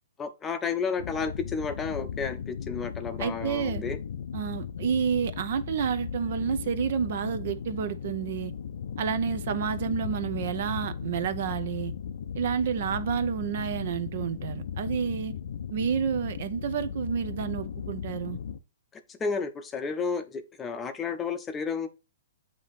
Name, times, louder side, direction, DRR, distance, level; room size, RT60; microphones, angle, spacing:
voice 1, 0.2-4.0 19.1-21.9, left 5 dB, 15° left, 0.6 m, -32 dB
sound 1, 1.0-18.6, left 7 dB, 70° left, 0.5 m, -36 dB
voice 2, 3.2-3.8 4.3-8.5 9.0-11.9 12.3-15.4 15.7-18.4, right 7 dB, 55° right, 0.6 m, -29 dB
7.8 x 2.9 x 4.1 m
hypercardioid pair, 145°, 0 cm